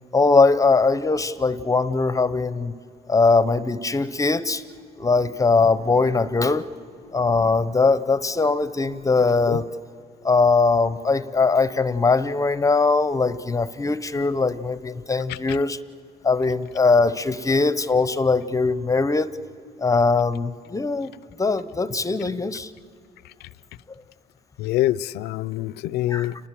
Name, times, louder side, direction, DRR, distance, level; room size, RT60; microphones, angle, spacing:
voice 1, 0.1-2.7 3.1-4.6 5.0-6.7 7.1-9.7 10.2-15.8 16.2-19.4 19.8-21.1 21.4-22.7 26.1-26.3, left 4 dB, 20° left, 14 dB, 0.7 m, -21 dB
voice 2, 24.6-26.3, left 14 dB, 85° left, 19 dB, 0.6 m, -25 dB
29.0 x 20.0 x 7.6 m, 2.4 s
cardioid pair, 110°, 17 cm